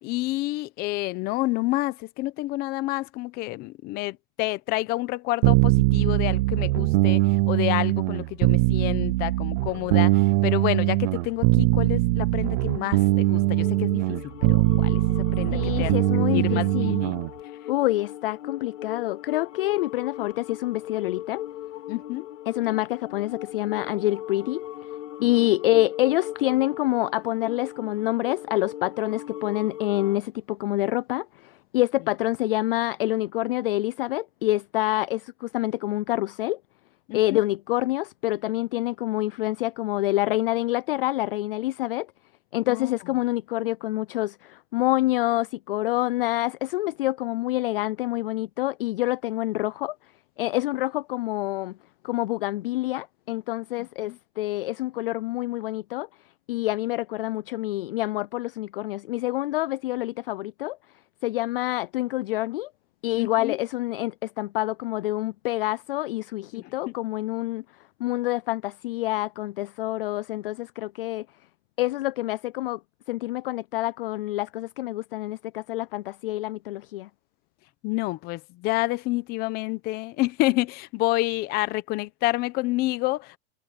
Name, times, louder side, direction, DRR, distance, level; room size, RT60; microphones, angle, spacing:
voice 1, 0.0-7.2 7.5-15.0 15.3-17.2 21.9-22.3 25.2-25.6 37.1-37.4 42.7-42.9 54.0-54.2 63.1-63.6 66.5-66.9 77.8-83.4, left 19 dB, 25° left, 1.0 m, -29 dB
sound 1, 5.4-17.3, right 21 dB, 20° right, 0.4 m, -22 dB
sound 2, 12.6-30.2, left 13 dB, 80° left, 5.1 m, -38 dB
voice 2, 15.5-17.0 17.7-21.4 22.5-24.6 25.2-36.6 37.1-42.1 42.5-50.0 50.4-51.7 52.0-56.1 56.5-60.8 61.2-62.7 63.0-67.6 68.0-71.3 71.8-72.8 73.1-77.1, left 17 dB, 50° left, 0.4 m, -27 dB
supercardioid pair, 160°, 37 cm